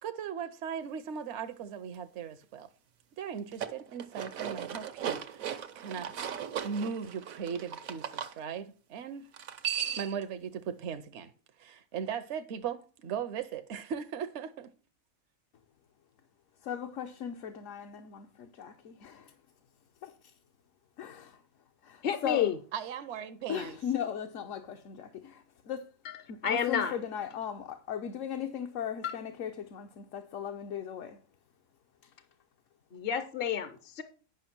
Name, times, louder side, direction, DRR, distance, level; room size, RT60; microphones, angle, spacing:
voice 1, 0.0-2.7 3.2-6.1 6.6-9.3 9.8-11.3 11.6-14.7 22.7-23.8, right 7 dB, 65° right, 0.9 m, -38 dB
sound 1, 3.4-8.3 9.3-10.2, right 9 dB, 80° right, 1.3 m, -37 dB
voice 2, 16.6-19.3 20.0-20.1 21.0-21.4 21.8-22.5 23.5-25.9 26.3-31.2, left 8 dB, 70° left, 1.2 m, -38 dB
voice 3, 22.0-22.6 26.0-26.2 26.4-27.0 29.0-29.1 32.9-34.0, left 8 dB, 55° left, 0.8 m, -30 dB
9.9 x 5.6 x 5.9 m
omnidirectional pair, 1.4 m